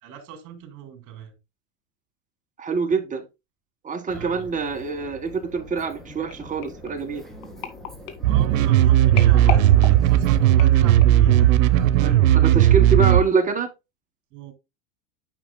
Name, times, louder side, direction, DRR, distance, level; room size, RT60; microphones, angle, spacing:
voice 1, 0.0-1.3 4.1-4.5 8.2-12.4 14.3-14.5, right 7 dB, 50° right, 3.3 m, -41 dB
voice 2, 2.6-3.3 3.8-7.2 12.0-13.7, right 5 dB, 20° right, 1.7 m, -25 dB
sound 1, 4.1-10.4, equal, ahead, 2.2 m, -43 dB
sound 2, 6.3-11.3 11.9-12.1 12.4-12.5, left 9 dB, 50° left, 2.3 m, -36 dB
sound 3, 8.2-13.2, right 12 dB, 75° right, 1.0 m, -16 dB
9.9 x 6.2 x 2.2 m
hypercardioid pair, 115°, 39 cm